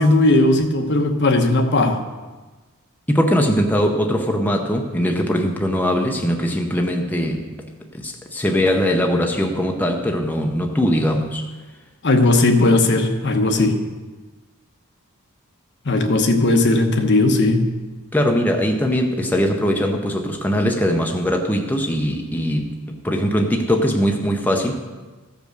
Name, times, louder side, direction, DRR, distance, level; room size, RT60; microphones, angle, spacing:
voice 1, 0.0-2.0 12.0-13.8 15.9-17.7, left 2 dB, 55° left, 5 dB, 1.0 m, -17 dB
voice 2, 3.1-7.5 7.9-11.5 18.1-22.7 23.0-24.8, equal, 10° left, 2 dB, 0.7 m, -21 dB
14.0 x 5.3 x 6.5 m, 1.3 s
head